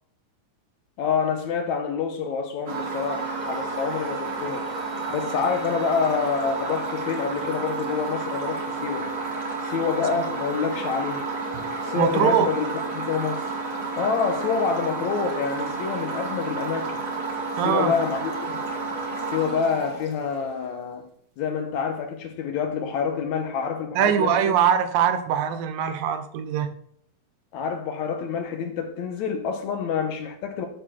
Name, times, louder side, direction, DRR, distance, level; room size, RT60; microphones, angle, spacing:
voice 1, 1.0-4.7 5.1-9.1 9.6-11.3 11.8-12.7 12.9-13.5 14.0-17.1 17.6-18.5 19.3-21.1 21.4-24.6 27.5-30.7, left 6 dB, 70° left, 2.0 m, -27 dB
sound 1, 2.7-20.6, right 3 dB, 50° right, 3.2 m, -31 dB
voice 2, 12.0-12.5 17.6-17.9 24.0-26.7, right 9 dB, 85° right, 2.6 m, -22 dB
9.0 x 7.1 x 4.3 m
omnidirectional pair, 3.9 m